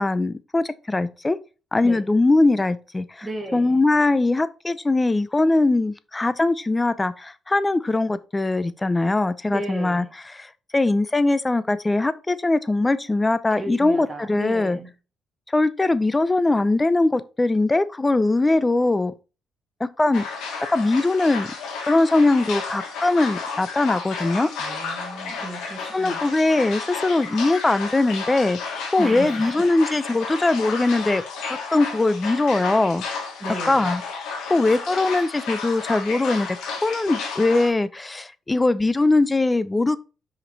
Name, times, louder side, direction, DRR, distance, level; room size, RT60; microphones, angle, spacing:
voice 1, 0.0-1.4 1.7-3.3 3.5-10.0 10.3-14.8 15.5-19.1 20.0-20.3 20.7-21.5 21.8-24.5 25.9-28.6 28.9-33.0 33.7-34.0 34.5-40.0, left 2 dB, 20° left, 0.6 m, -21 dB
voice 2, 3.2-3.8 9.5-10.1 13.5-14.9 24.6-26.2 29.0-29.7 33.4-33.9, right 1 dB, 20° right, 2.4 m, -34 dB
sound 1, 20.1-37.7, left 5 dB, 85° left, 2.5 m, -32 dB
5.7 x 5.1 x 4.1 m
cardioid pair, 90°, 0 cm